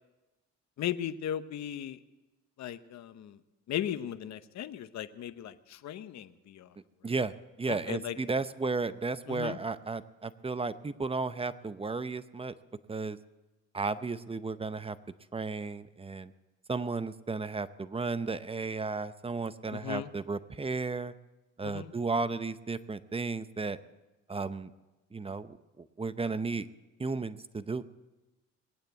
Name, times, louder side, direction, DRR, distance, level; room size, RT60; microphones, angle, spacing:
voice 1, 0.8-2.0 2.6-3.4 3.7-6.7 7.7-8.2 9.3-9.6 19.7-20.1 21.6-21.9, left 10 dB, 65° left, 12 dB, 0.8 m, -37 dB
voice 2, 7.0-12.5 12.9-13.2 13.7-15.0 15.3-16.3 16.7-21.1 21.6-23.8 24.3-24.7 25.1-26.7 27.0-27.8, right 4 dB, 20° right, 13 dB, 0.7 m, -34 dB
20.5 x 8.9 x 7.9 m, 1.1 s
cardioid pair, 90°, 30 cm